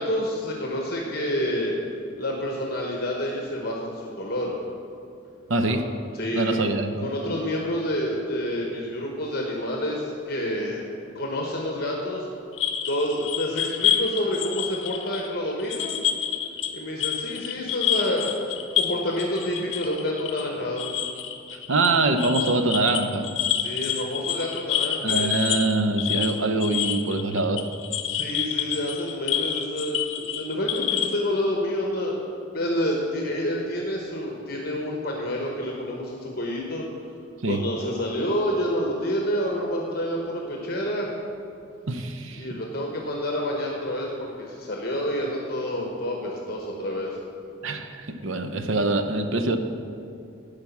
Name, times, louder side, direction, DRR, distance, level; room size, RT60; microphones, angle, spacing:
voice 1, 0.0-1.7 2.2-4.5 5.6-5.8 6.1-10.8 11.1-12.3 12.9-16.0 16.7-18.3 18.7-20.9 23.5-25.3 28.1-32.3 32.5-36.8 37.5-41.1 42.3-47.2, equal, 50° left, -1 dB, 1.1 m, -28 dB
voice 2, 5.5-5.8 6.3-7.4 21.5-23.3 25.0-27.6 37.4-37.6 41.9-42.5 47.6-49.6, right 2 dB, 75° right, 8 dB, 0.7 m, -24 dB
sound 1, 12.5-16.7 17.0-31.2, left 10 dB, 70° left, 0.7 m, -28 dB
10.5 x 5.1 x 7.1 m, 2.5 s
head